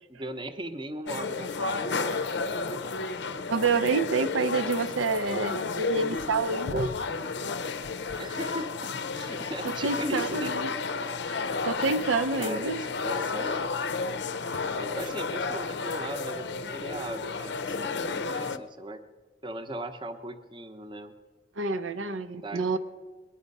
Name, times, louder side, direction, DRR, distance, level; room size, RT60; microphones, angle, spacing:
voice 1, 0.1-2.8 4.4-4.7 8.2-8.7 9.2-10.6 12.3-13.6 14.7-19.0 19.4-21.1 22.3-22.8, right 1 dB, 25° right, 8 dB, 0.7 m, -38 dB
sound 1, 1.1-18.6, left 4 dB, 60° left, 0.6 m, -32 dB
voice 2, 3.5-6.9 9.6-10.7 11.3-12.8 18.3-18.4 21.6-22.8, right 4 dB, 90° right, 10 dB, 0.7 m, -28 dB
21.0 x 10.0 x 5.4 m, 1.4 s
head